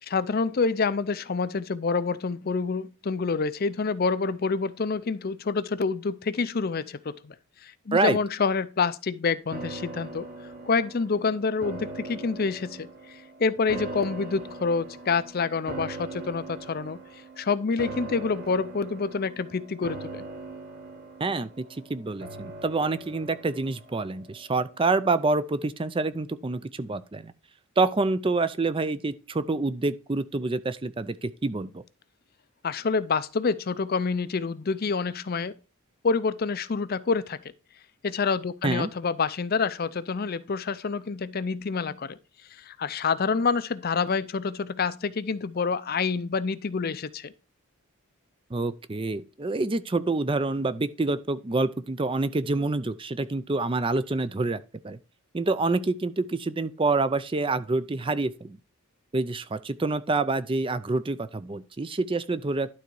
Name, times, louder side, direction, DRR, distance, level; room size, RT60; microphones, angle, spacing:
voice 1, 0.0-7.3 7.6-10.3 10.7-17.0 17.4-20.2 32.6-35.5 36.0-37.4 38.0-42.2 42.6-47.3, left 4 dB, 45° left, 0.5 m, -27 dB
sound 1, 9.5-24.8 25.2-25.3, right 2 dB, 45° right, 1.4 m, -41 dB
voice 2, 21.2-21.6 21.9-27.3 27.8-31.8 38.6-38.9 48.5-55.0 55.3-58.6 59.1-62.7, right 3 dB, 25° right, 0.4 m, -27 dB
11.5 x 4.0 x 4.7 m
head